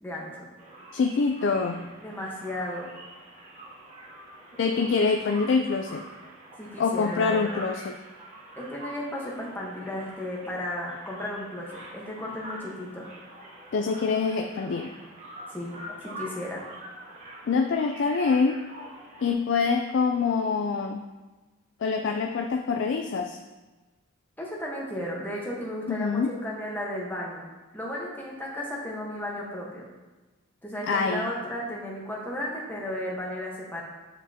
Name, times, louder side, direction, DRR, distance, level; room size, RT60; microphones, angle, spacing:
voice 1, 0.0-0.5 2.0-2.9 6.6-7.6 8.6-13.1 15.5-15.8 16.0-16.6 24.4-27.5 27.7-29.8 30.6-33.8, left 1 dB, 10° left, -3 dB, 1.1 m, -34 dB
sound 1, 0.6-19.3, right 1 dB, 30° right, 1.3 m, -45 dB
voice 2, 0.9-1.9 4.6-6.0 6.8-8.0 13.7-14.9 17.5-18.6 19.2-21.1 21.8-23.4 25.9-26.3 30.9-31.3, left 4 dB, 55° left, 4 dB, 0.3 m, -25 dB
8.9 x 5.0 x 2.8 m, 1.2 s
head